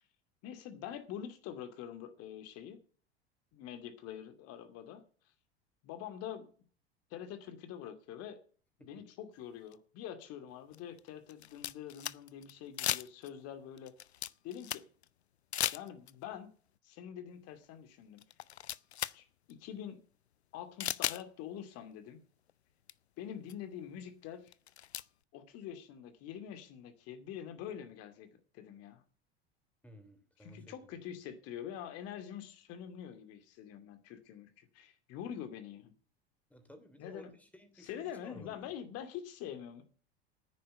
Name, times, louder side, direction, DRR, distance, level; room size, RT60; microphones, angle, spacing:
voice 1, 0.4-2.8 3.5-5.0 5.8-6.5 7.1-8.4 8.8-13.9 14.4-14.8 15.7-16.5 16.8-18.2 19.1-20.0 20.5-22.2 23.2-24.5 25.3-28.3 28.5-29.0 30.4-35.9 37.0-37.3 37.8-39.8, left 9 dB, 50° left, 2.5 m, -45 dB
sound 1, 9.7-9.8 10.7-12.5 12.8-13.4 13.8-15.0 15.5-16.2 17.6-17.7 18.2-19.2 19.5-19.6 20.8-21.2 22.5-22.6 22.9-23.0 23.5-23.6 24.5-25.0, left 11 dB, 80° left, 0.5 m, -36 dB
voice 2, 29.8-30.9 36.5-38.7, equal, 5° left, 3.3 m, -55 dB
10.0 x 9.6 x 7.9 m
figure-of-eight pair, 80°, 32 cm